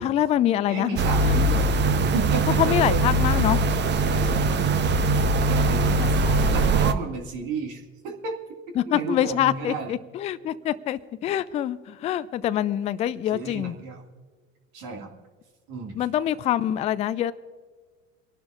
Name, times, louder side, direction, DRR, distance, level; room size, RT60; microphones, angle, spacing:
voice 1, 0.0-1.0 1.2-1.3 2.6-3.6 6.0-6.7 8.8-13.8 16.0-17.3, left 12 dB, 20° left, 15 dB, 0.3 m, -25 dB
voice 2, 0.7-1.8 2.1-3.0 4.1-5.1 5.4-6.2 6.5-9.9 13.3-14.0 14.7-15.1 15.7-16.0, right 4 dB, 55° right, 2 dB, 2.1 m, -33 dB
sound 1, 1.0-6.9, right 2 dB, 30° right, 0.8 m, -21 dB
28.5 x 11.5 x 2.5 m, 1.5 s
figure-of-eight pair, 70°, 39 cm